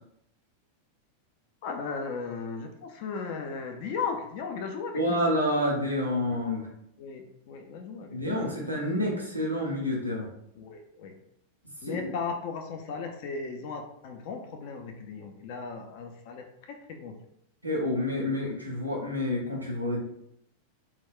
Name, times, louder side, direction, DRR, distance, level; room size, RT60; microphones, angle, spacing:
voice 1, 1.6-5.2 6.4-6.6 7.0-8.4 10.5-11.1 11.8-17.1, left 5 dB, 50° left, 4 dB, 0.4 m, -36 dB
voice 2, 4.9-6.7 8.1-10.3 11.9-12.1 17.6-20.0, left 1 dB, 85° right, -3 dB, 0.6 m, -28 dB
2.2 x 2.2 x 3.5 m, 0.75 s
figure-of-eight pair, 90°, 0 cm